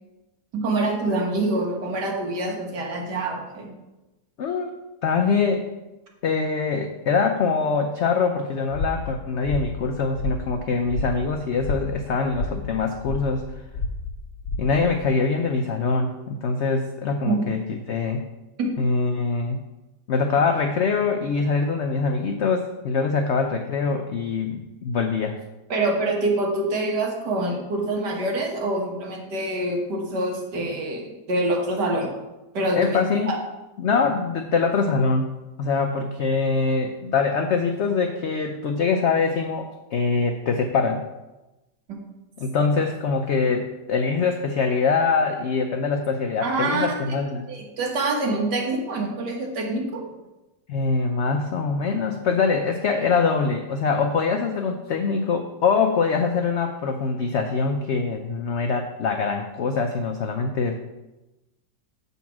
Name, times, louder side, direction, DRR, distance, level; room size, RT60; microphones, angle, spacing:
voice 1, 0.5-3.7 17.3-17.4 18.6-18.7 25.7-32.1 32.5-33.4 46.4-47.2 47.5-50.1, right 2 dB, 75° right, 0 dB, 2.0 m, -26 dB
voice 2, 4.4-4.7 5.0-5.6 6.2-13.5 14.6-18.2 18.8-19.6 20.1-25.4 32.8-33.3 33.8-35.3 35.6-41.0 42.4-47.5 50.7-60.9, left 4 dB, 85° left, 5 dB, 0.6 m, -23 dB
sound 1, 8.7-15.1, left 2 dB, 45° left, 1.1 m, -32 dB
7.4 x 4.1 x 5.8 m, 1.0 s
omnidirectional pair, 1.8 m